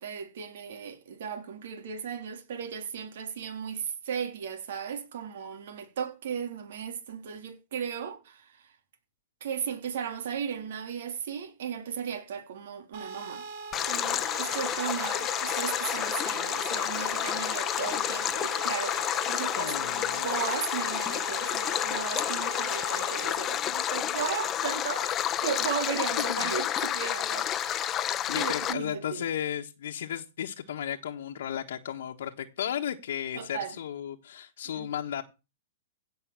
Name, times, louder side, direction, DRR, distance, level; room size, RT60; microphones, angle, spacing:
voice 1, 0.0-8.7 9.4-13.5 13.9-27.9 28.3-29.2 33.4-33.8 34.7-34.9, right 7 dB, 70° right, 3.4 m, -36 dB
sound 1, 12.9-23.3, right 4 dB, 50° right, 2.5 m, -40 dB
Stream, 13.7-28.7, left 11 dB, 25° left, 0.9 m, -30 dB
voice 2, 19.6-20.3 26.3-26.5 28.3-35.2, left 9 dB, 75° left, 1.3 m, -34 dB
16.5 x 5.7 x 7.5 m
hypercardioid pair, 145°, 0 cm